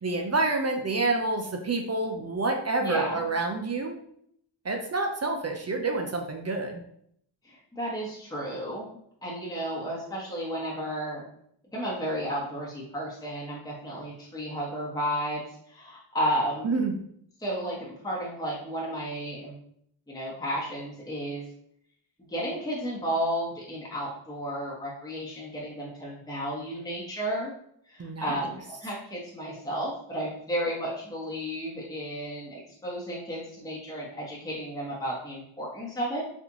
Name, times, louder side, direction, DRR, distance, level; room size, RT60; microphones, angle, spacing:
voice 1, 0.0-4.0 4.6-6.8 16.6-16.9 28.0-28.4, right 3 dB, 35° right, 3 dB, 0.5 m, -28 dB
voice 2, 2.8-3.2 7.4-8.9 9.2-11.2 11.7-16.7 17.4-19.6 20.1-21.4 22.3-27.5 27.8-36.2, equal, 10° left, -5 dB, 1.0 m, -33 dB
4.2 x 2.5 x 2.9 m, 0.69 s
cardioid pair, 70°, 48 cm